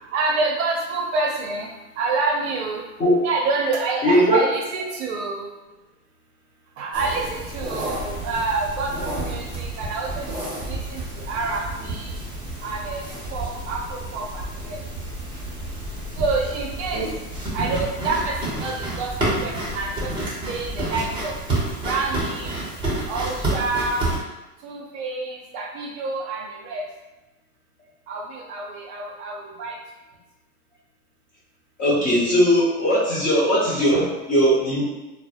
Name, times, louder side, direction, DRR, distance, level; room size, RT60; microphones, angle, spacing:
voice 1, 0.0-1.7 2.0-2.9 3.2-5.5 6.8-12.2 12.6-13.0 13.3-14.8 16.2-17.0 17.5-21.3 21.8-22.6 23.1-24.0 24.6-26.8 28.1-29.8, right 3 dB, 45° right, -1 dB, 0.6 m, -27 dB
voice 2, 4.0-4.4 16.9-17.1 31.8-34.8, equal, 20° left, -8 dB, 0.5 m, -19 dB
sound 1, 6.9-24.2, right 1 dB, 10° right, 0.8 m, -30 dB
2.1 x 2.0 x 2.8 m, 1.1 s
hypercardioid pair, 110°, 47 cm